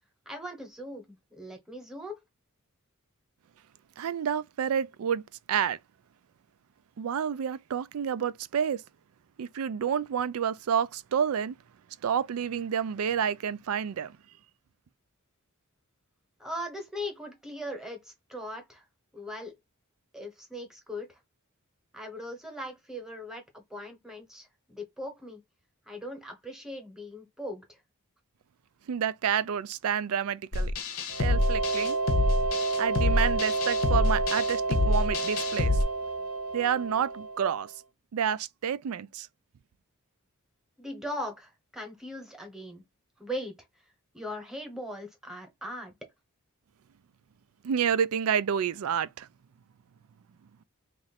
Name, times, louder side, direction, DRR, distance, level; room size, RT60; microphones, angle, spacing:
voice 1, 0.3-2.2 16.4-18.8 19.1-19.5 20.1-21.2 21.9-25.4 25.9-27.8 40.8-42.8 43.2-43.5 44.1-45.9, equal, ahead, 1.0 m, -39 dB
voice 2, 4.0-5.2 5.5-5.8 7.0-8.8 9.4-11.5 12.0-14.2 28.9-30.7 31.2-32.0 32.8-35.8 36.5-37.7 38.1-39.3 47.6-49.3, right 8 dB, 70° right, 0.4 m, -29 dB
sound 1, 30.5-35.8, left 2 dB, 65° left, 0.8 m, -27 dB
sound 2, 31.1-37.7, right 3 dB, 90° right, 1.2 m, -30 dB
3.0 x 2.5 x 4.1 m
head